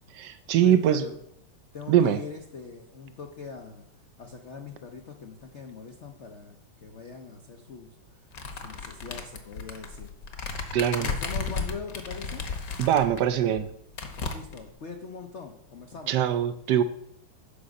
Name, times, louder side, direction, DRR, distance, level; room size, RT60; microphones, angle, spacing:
voice 1, 0.1-1.0 1.9-2.2 10.7-11.1 12.8-13.7 16.1-16.8, right 10 dB, 75° right, 11 dB, 0.9 m, -22 dB
voice 2, 0.6-1.1 1.7-3.9 4.2-10.1 11.0-12.4 14.3-16.2, left 5 dB, 70° left, 4 dB, 0.6 m, -42 dB
sound 1, 8.3-13.2 13.6-13.7 13.9-14.7, left 4 dB, 55° left, 1.2 m, -34 dB
8.5 x 5.0 x 6.3 m, 0.73 s
omnidirectional pair, 2.3 m